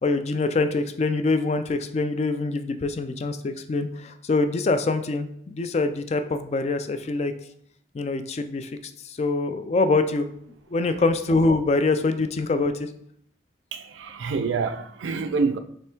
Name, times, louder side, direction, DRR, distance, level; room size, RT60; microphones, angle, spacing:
voice 1, 0.0-7.3 7.9-8.7 9.0-10.3 10.7-12.9, left 3 dB, 35° left, 0.3 m, -24 dB
voice 2, 13.7-15.6, right 4 dB, 85° right, 0.4 m, -27 dB
3.4 x 3.2 x 4.4 m
head